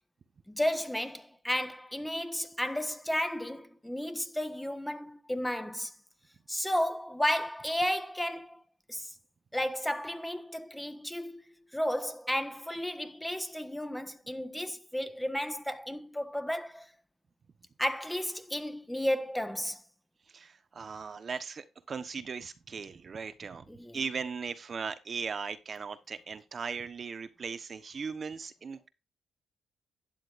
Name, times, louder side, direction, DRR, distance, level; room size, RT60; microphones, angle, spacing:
voice 1, 0.5-5.9 6.5-8.6 8.9-9.1 9.5-11.4 11.7-16.9 17.8-19.8 23.7-24.0, equal, 5° left, 1.4 m, -33 dB
voice 2, 20.3-23.6 23.9-28.9, right 5 dB, 40° right, 1.1 m, -38 dB
12.0 x 10.5 x 2.6 m
cardioid pair, 90°, 0 cm